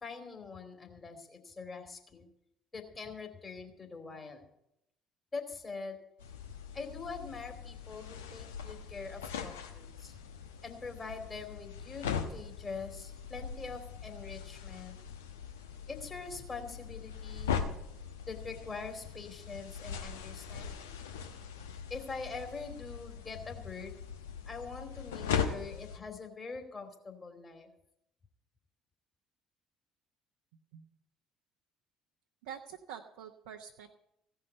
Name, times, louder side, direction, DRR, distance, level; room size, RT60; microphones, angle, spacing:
voice 1, 0.0-2.3 2.7-4.4 5.3-6.0 6.7-10.2 10.6-15.0 15.9-17.5 18.2-20.9 21.9-24.0 24.5-27.7, left 4 dB, 25° left, 4 dB, 2.6 m, -44 dB
sound 1, 6.2-26.0, left 7 dB, 75° left, 1.0 m, -40 dB
voice 2, 32.4-34.0, right 8 dB, 65° right, 2 dB, 0.8 m, -46 dB
16.0 x 5.7 x 9.5 m, 0.81 s
figure-of-eight pair, 55°, 0 cm